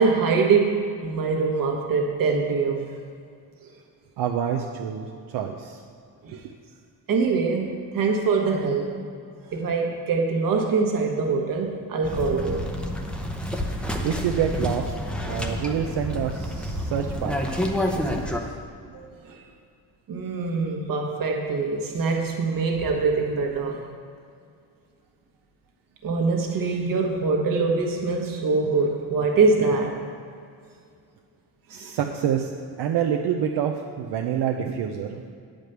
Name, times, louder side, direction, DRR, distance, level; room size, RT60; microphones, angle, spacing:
voice 1, 0.0-3.0 6.2-6.5 7.1-9.0 9.5-12.7 18.9-19.4 20.1-23.9 26.0-30.0 31.7-31.9, right 4 dB, 55° right, 1.4 m, -24 dB
voice 2, 4.2-5.8 6.3-6.4 14.0-14.9 15.2-17.4 17.9-18.3 31.7-32.5 32.8-35.3, right 8 dB, 80° right, 0.7 m, -27 dB
sound 1, 12.0-18.4, left 1 dB, 5° left, 0.6 m, -29 dB
9.1 x 5.1 x 8.0 m
cardioid pair, 160°, 40 cm